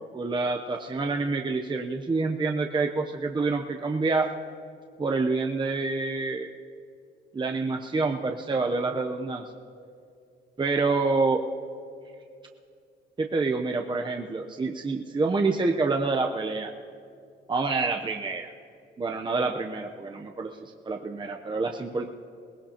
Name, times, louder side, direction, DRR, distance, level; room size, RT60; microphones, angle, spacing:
voice 1, 0.1-4.3 5.0-6.5 7.3-9.4 10.6-11.4 13.2-16.7 17.5-18.5 19.0-22.1, right 3 dB, 25° right, 3 dB, 0.7 m, -27 dB
22.0 x 17.5 x 2.9 m, 2.3 s
cardioid pair, 90°, 20 cm